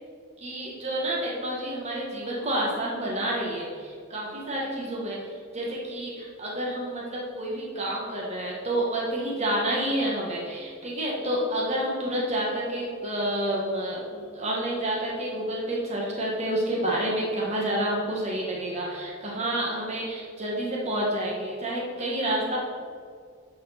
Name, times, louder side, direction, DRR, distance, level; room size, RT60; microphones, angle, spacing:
voice 1, 0.4-22.6, right 1 dB, 35° right, -3 dB, 1.6 m, -29 dB
10.0 x 4.8 x 5.8 m, 2.1 s
head